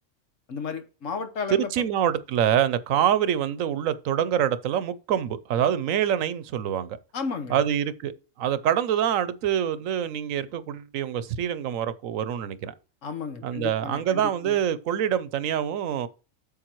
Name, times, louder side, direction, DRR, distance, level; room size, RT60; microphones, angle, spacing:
voice 1, 0.5-1.8 7.1-7.6 13.0-14.6, left 5 dB, 70° left, 1.5 m, -33 dB
voice 2, 1.5-7.0 7.5-8.1 8.4-12.7 13.4-16.1, right 9 dB, 85° right, 1.1 m, -25 dB
8.7 x 7.0 x 3.1 m
omnidirectional pair, 1.3 m